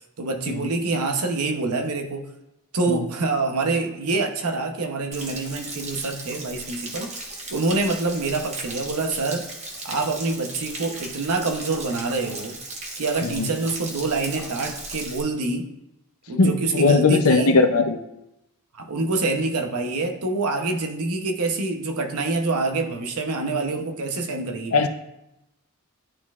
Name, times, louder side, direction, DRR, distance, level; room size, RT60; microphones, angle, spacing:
voice 1, 0.0-2.3 2.7-7.1 7.5-9.5 9.8-12.6 13.0-15.7 16.3-17.5 18.7-24.9, right 3 dB, 80° right, 4 dB, 0.8 m, -26 dB
Stream / Splash splatter / Trickle dribble, 5.1-15.2, right 2 dB, 30° right, 1.0 m, -36 dB
voice 2, 16.4-18.0 24.7-24.9, left 3 dB, 70° left, 7 dB, 0.6 m, -19 dB
11.5 x 4.0 x 2.4 m, 0.88 s
head